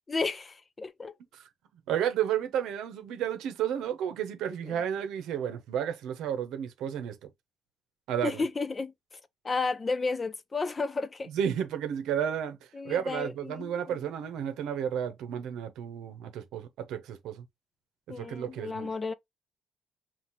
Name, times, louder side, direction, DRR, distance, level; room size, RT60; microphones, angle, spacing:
voice 1, 0.1-1.1 4.6-4.8 8.2-8.9 9.4-11.3 12.7-14.0 18.1-19.1, left 4 dB, 20° left, 0.4 m, -32 dB
voice 2, 1.9-7.2 8.1-8.4 11.3-12.6 12.8-17.4 18.2-18.9, right 9 dB, 75° right, 0.8 m, -32 dB
5.6 x 2.4 x 3.0 m
cardioid pair, 155°, 0 cm